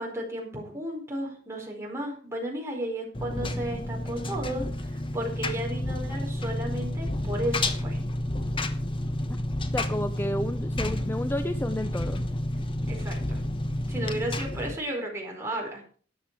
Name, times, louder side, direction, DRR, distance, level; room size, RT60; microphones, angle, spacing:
voice 1, 0.0-4.7 5.1-8.0 11.0-11.1 12.9-13.4 13.9-15.8, right 1 dB, 15° right, -1 dB, 4.8 m, -33 dB
Engine, 3.1-14.8, left 1 dB, 30° left, 1.0 m, -30 dB
voice 2, 9.7-12.2, left 1 dB, 15° left, 10 dB, 0.6 m, -31 dB
13.5 x 9.5 x 4.8 m, 0.43 s
head